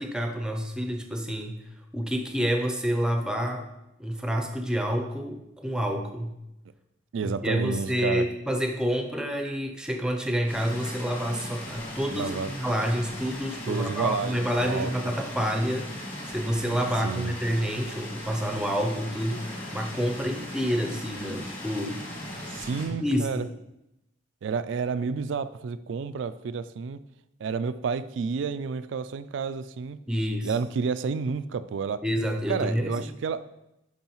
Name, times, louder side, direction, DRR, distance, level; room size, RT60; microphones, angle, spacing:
voice 1, 0.0-1.6 1.9-3.7 4.0-6.3 7.2-22.0 23.0-23.5 30.1-30.5 32.0-33.1, equal, 5° right, 4 dB, 0.6 m, -28 dB
voice 2, 7.1-8.3 12.1-12.5 13.7-14.9 17.0-17.3 22.5-23.5 24.4-27.0 27.4-30.0 30.4-32.0 32.5-33.5, right 5 dB, 80° right, 14 dB, 0.3 m, -30 dB
sound 1, 10.5-22.9, left 1 dB, 30° left, 1.7 m, -38 dB
11.0 x 4.7 x 3.0 m, 0.90 s
head